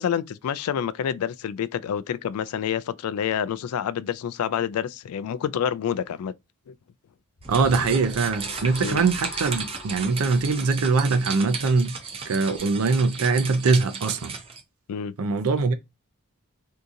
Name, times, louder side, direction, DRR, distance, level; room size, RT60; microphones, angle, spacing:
voice 1, 0.0-6.3 6.7-6.8 8.8-9.0 14.9-15.1, left 8 dB, 85° left, 0.3 m, -28 dB
sound 1, 7.4-11.7, left 1 dB, 55° left, 0.9 m, -42 dB
sound 2, 7.4-14.6, right 5 dB, 25° right, 0.4 m, -35 dB
voice 2, 7.5-12.0 12.2-14.3 15.2-15.7, right 4 dB, 80° right, 0.5 m, -22 dB
3.6 x 2.8 x 2.5 m
head